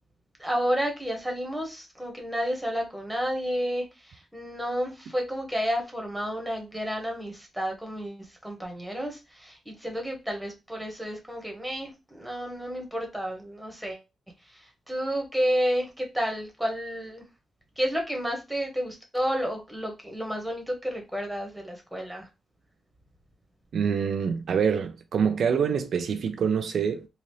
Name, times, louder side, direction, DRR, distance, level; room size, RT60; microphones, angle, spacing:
voice 1, 0.4-14.0 14.5-17.2 17.8-22.3, equal, 5° right, 1.2 m, -31 dB
voice 2, 23.7-27.1, right 7 dB, 75° right, 0.4 m, -25 dB
3.9 x 2.4 x 3.1 m
cardioid pair, 105°, 0 cm